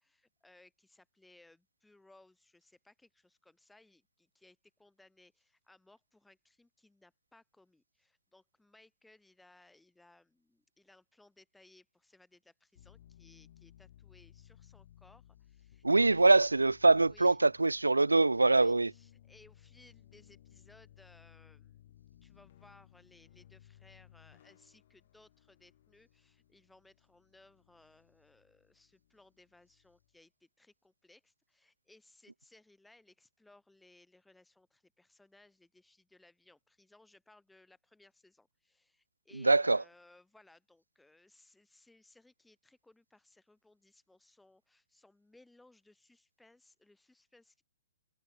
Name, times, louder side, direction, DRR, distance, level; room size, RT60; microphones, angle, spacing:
voice 1, 0.0-16.4 16.9-17.4 18.4-47.6, left 2 dB, 5° left, 5.0 m, -63 dB
sound 1, 12.7-30.1, left 12 dB, 45° left, 1.9 m, -61 dB
voice 2, 15.8-18.9 39.4-39.8, right 3 dB, 75° right, 0.4 m, -24 dB
figure-of-eight pair, 120°, 0 cm